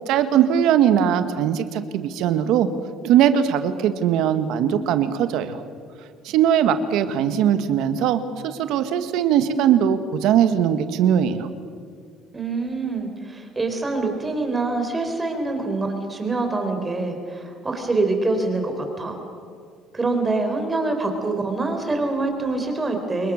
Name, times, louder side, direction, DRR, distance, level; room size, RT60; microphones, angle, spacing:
voice 1, 0.1-2.7 3.0-5.6 6.2-11.5, right 9 dB, 75° right, 10 dB, 1.7 m, -20 dB
voice 2, 12.3-19.2 19.9-23.3, right 3 dB, 20° right, 4 dB, 4.6 m, -25 dB
28.0 x 21.5 x 6.6 m, 2.1 s
cardioid pair, 100°, 0 cm